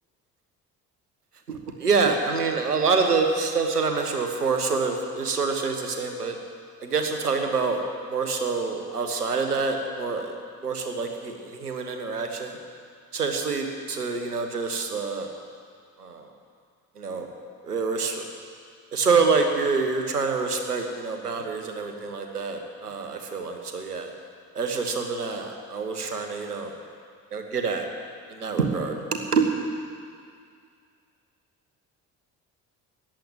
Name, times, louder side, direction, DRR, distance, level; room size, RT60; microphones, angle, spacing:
voice 1, 1.5-6.4 6.8-7.8 8.1-10.3 10.6-12.6 13.1-15.3 16.0-16.3 17.0-17.3 17.6-18.2 18.9-24.1 24.5-26.7 27.3-27.9 28.3-29.5, right 4 dB, 85° right, 5 dB, 1.3 m, -26 dB
14.5 x 10.5 x 9.1 m, 2.2 s
figure-of-eight pair, 50°, 45 cm